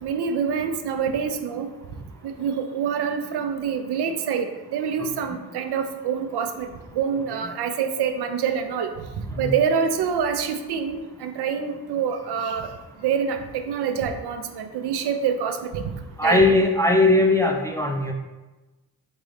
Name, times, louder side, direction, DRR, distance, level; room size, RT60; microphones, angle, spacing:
voice 1, 0.0-1.7 2.2-8.9 9.2-12.7 13.0-15.9 16.2-16.4, right 7 dB, 55° right, 7 dB, 0.6 m, -26 dB
voice 2, 16.2-18.1, left 2 dB, 5° left, 2 dB, 0.5 m, -19 dB
3.8 x 3.7 x 3.2 m, 1.1 s
hypercardioid pair, 45°, 49 cm